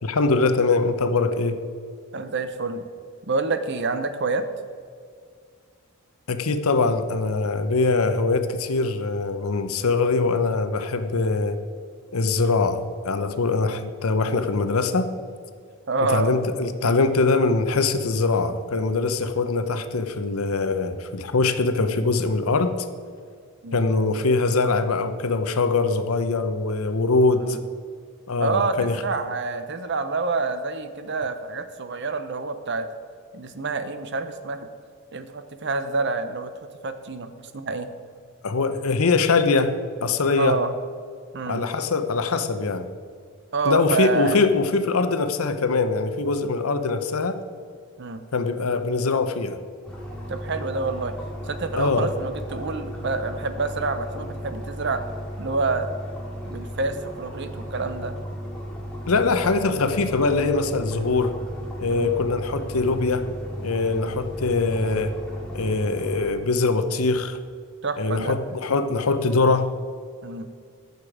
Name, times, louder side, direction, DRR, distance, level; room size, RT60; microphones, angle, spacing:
voice 1, 0.0-1.5 6.3-11.6 12.1-15.1 16.1-22.7 23.7-27.6 28.3-29.0 38.4-40.6 41.5-42.9 43.6-47.4 48.3-49.6 51.8-52.1 59.1-61.3 61.8-63.3 63.6-65.1 65.5-67.4 68.0-69.7, left 3 dB, 80° left, 9 dB, 0.8 m, -22 dB
voice 2, 2.1-2.8 3.3-4.5 15.9-16.3 23.6-23.8 27.4-27.6 28.4-32.9 33.3-34.7 35.1-36.5 36.8-37.9 40.4-40.7 41.3-41.6 43.5-44.4 48.0-48.2 50.3-51.1 51.5-55.0 55.4-55.9 56.5-58.1 61.9-62.2 67.8-68.4 70.2-70.5, right 3 dB, 55° right, 10 dB, 0.7 m, -27 dB
sound 1, 49.8-66.3, equal, 5° left, 2.1 m, -35 dB
13.5 x 6.8 x 4.9 m, 2.1 s
head